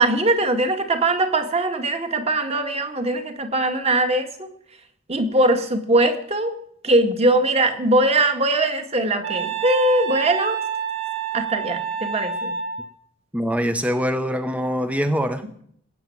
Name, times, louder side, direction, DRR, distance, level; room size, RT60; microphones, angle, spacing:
voice 1, 0.0-4.5 5.1-6.6 6.8-10.6 11.3-12.5, right 2 dB, 30° right, 6 dB, 1.8 m, -21 dB
Wind instrument woodwind instrument, 9.2-12.9, right 7 dB, 55° right, 4.8 m, -28 dB
voice 2, 13.3-15.4, equal, 5° right, 9 dB, 0.8 m, -23 dB
20.5 x 8.9 x 7.2 m, 0.67 s
head